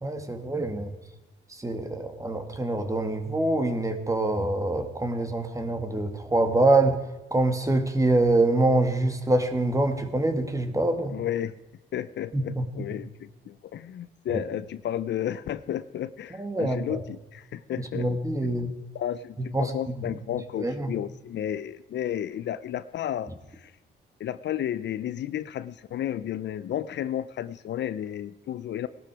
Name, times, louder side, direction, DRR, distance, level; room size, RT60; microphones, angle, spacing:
voice 1, 0.0-0.9 1.5-7.0 7.3-11.1 12.3-12.9 14.3-14.4 16.4-17.0 17.9-18.7 19.5-20.0 20.6-20.9, right 2 dB, 15° right, 6 dB, 2.1 m, -25 dB
voice 2, 11.1-11.6 11.9-18.1 18.4-18.6 18.9-23.7 24.2-28.9, left 11 dB, 65° left, 14 dB, 0.7 m, -32 dB
18.5 x 12.0 x 5.0 m, 1.1 s
cardioid pair, 90°, 20 cm